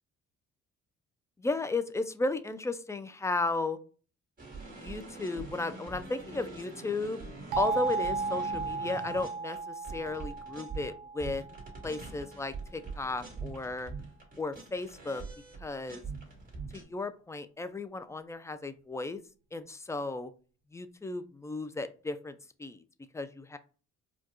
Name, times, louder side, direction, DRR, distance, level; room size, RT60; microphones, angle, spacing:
voice 1, 1.4-3.8 4.8-7.2 7.6-11.4 11.8-13.9 14.4-15.2 15.6-16.0 16.7-19.2 19.5-20.3 20.7-22.8 23.1-23.6, left 3 dB, 10° left, 11 dB, 0.3 m, -34 dB
sound 1, 4.4-10.9 11.2-16.8, right 3 dB, 25° right, 1.9 m, -43 dB
sound 2, 7.5-12.2, right 4 dB, 85° right, 0.6 m, -35 dB
4.5 x 2.3 x 2.9 m, 0.37 s
cardioid pair, 90°, 30 cm